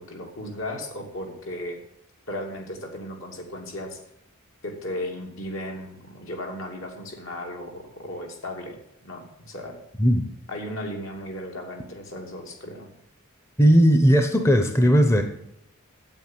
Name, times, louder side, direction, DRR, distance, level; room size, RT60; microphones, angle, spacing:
voice 1, 0.0-1.8 2.3-4.0 4.6-8.8 9.0-9.8 10.5-12.9, left 1 dB, 70° left, 1 dB, 2.8 m, -35 dB
voice 2, 13.6-15.2, equal, 15° left, 7 dB, 0.8 m, -17 dB
9.1 x 8.5 x 9.1 m, 0.77 s
head